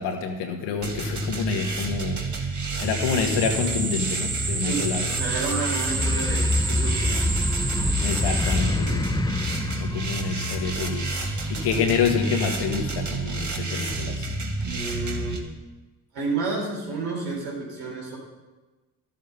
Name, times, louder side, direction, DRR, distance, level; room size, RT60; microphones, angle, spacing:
voice 1, 0.0-2.2 2.8-5.1 8.0-9.1 9.8-11.1 11.5-14.3, left 6 dB, 75° left, 3 dB, 1.8 m, -27 dB
sound 1, 0.8-15.4, right 2 dB, 45° right, 2.1 m, -30 dB
sound 2, 2.6-9.1, right 4 dB, 20° right, 0.8 m, -31 dB
voice 2, 4.6-7.2 14.6-15.4 16.1-18.2, right 3 dB, 80° right, -2 dB, 4.3 m, -30 dB
sound 3, 6.0-10.9, left 3 dB, 10° left, 0.6 m, -26 dB
12.5 x 7.6 x 5.8 m, 1.2 s
supercardioid pair, 60°, 41 cm